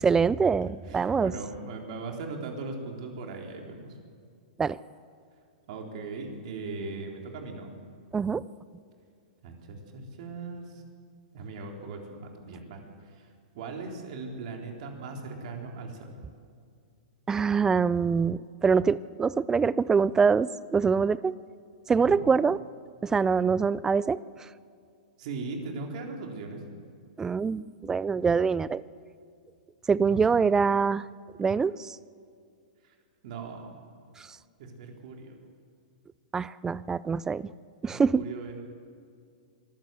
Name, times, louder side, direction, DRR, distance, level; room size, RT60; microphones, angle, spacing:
voice 1, 0.0-1.3 4.6-4.8 8.1-8.4 17.3-21.4 21.9-22.6 23.0-24.2 27.2-28.8 29.9-31.1 31.4-32.0 34.2-34.3 36.3-37.5 37.8-38.2, right 5 dB, 10° right, 20 dB, 0.4 m, -24 dB
voice 2, 0.9-4.0 5.7-7.7 9.4-10.8 11.3-13.3 13.5-16.1 22.0-22.2 25.2-26.6 30.0-30.2 32.8-32.9 33.2-33.9 34.6-35.4 37.8-38.6, right 3 dB, 55° right, 2 dB, 3.9 m, -39 dB
24.0 x 14.5 x 7.8 m, 2.3 s
hypercardioid pair, 135°, 5 cm